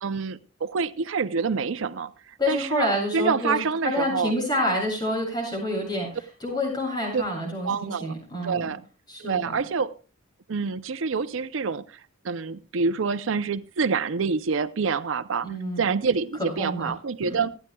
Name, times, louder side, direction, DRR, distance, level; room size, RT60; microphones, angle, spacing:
voice 1, 0.0-2.9 3.1-4.3 7.1-7.2 7.6-8.1 8.4-8.8 9.2-9.9 10.5-15.5 15.8-17.5, right 5 dB, 65° right, 13 dB, 0.5 m, -27 dB
voice 2, 2.4-8.7 9.1-9.6 15.4-15.9 16.4-16.9 17.2-17.4, left 1 dB, 20° left, -1 dB, 7.7 m, -28 dB
26.5 x 9.8 x 2.3 m, 0.35 s
head